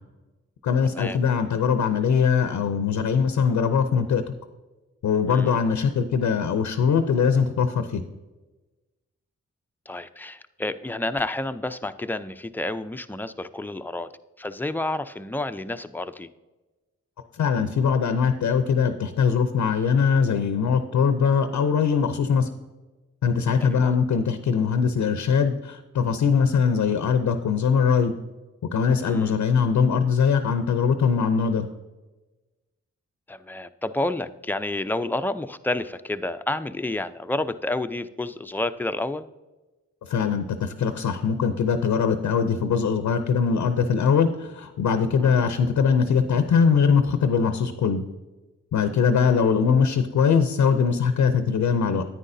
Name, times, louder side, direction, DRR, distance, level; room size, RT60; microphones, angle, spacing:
voice 1, 0.6-4.2 5.0-8.0 17.4-22.5 23.2-28.1 28.7-31.7 40.0-48.0 48.7-52.1, left 6 dB, 85° left, 9 dB, 0.6 m, -21 dB
voice 2, 5.3-5.6 9.9-14.1 14.4-16.3 23.6-23.9 29.0-29.3 33.3-39.3 45.2-45.4, left 2 dB, 5° left, 10 dB, 0.5 m, -30 dB
9.8 x 9.3 x 2.7 m, 1.2 s
cardioid pair, 50°, 29 cm